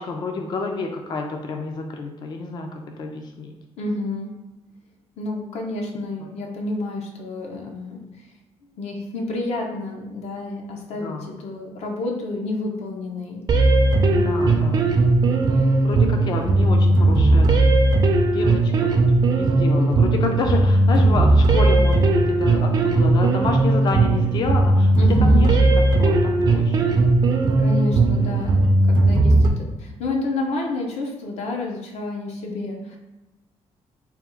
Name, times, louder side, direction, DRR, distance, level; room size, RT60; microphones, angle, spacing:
voice 1, 0.0-3.5 11.0-11.3 14.2-14.8 15.8-17.5 18.3-24.9 25.2-27.0 32.5-32.7, left 3 dB, 40° left, 3 dB, 0.4 m, -28 dB
voice 2, 3.8-4.4 5.2-8.3 8.8-13.4 14.1-14.5 15.5-15.8 25.0-25.5 27.6-33.0, left 2 dB, 70° left, 1 dB, 0.7 m, -30 dB
sound 1, 13.5-29.5, right 2 dB, 35° right, 0.4 m, -17 dB
3.5 x 2.3 x 4.3 m, 1.0 s
cardioid pair, 165°, 12 cm